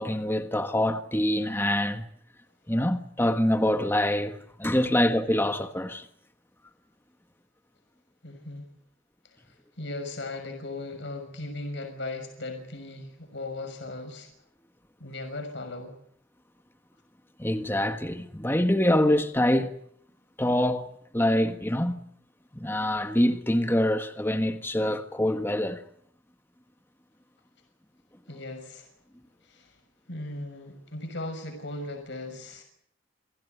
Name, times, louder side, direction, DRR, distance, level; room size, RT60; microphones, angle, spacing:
voice 1, 0.0-2.0 2.7-6.1 17.4-19.8 20.4-20.9 21.1-22.0 22.5-25.8, left 1 dB, 10° left, 1.5 m, -25 dB
voice 2, 8.2-8.7 9.2-14.3 15.0-16.0 28.3-28.9 29.4-29.8 30.1-32.6, left 2 dB, 60° left, 6.3 m, -38 dB
28.0 x 17.0 x 9.5 m
head